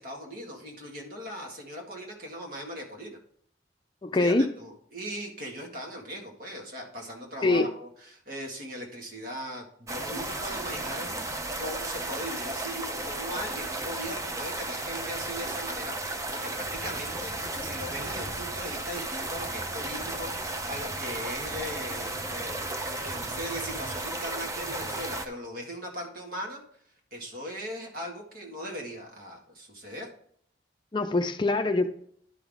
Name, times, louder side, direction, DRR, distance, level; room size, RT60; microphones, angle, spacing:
voice 1, 0.0-3.2 4.2-11.1 11.6-17.3 17.6-26.6 27.1-30.1, equal, 55° right, 0 dB, 1.9 m, -39 dB
voice 2, 4.0-4.5 7.4-7.7 30.9-31.9, left 2 dB, 25° left, 7 dB, 0.5 m, -24 dB
sound 1, 9.9-25.3, right 2 dB, 15° right, 0.6 m, -34 dB
11.0 x 5.9 x 3.6 m, 0.64 s
head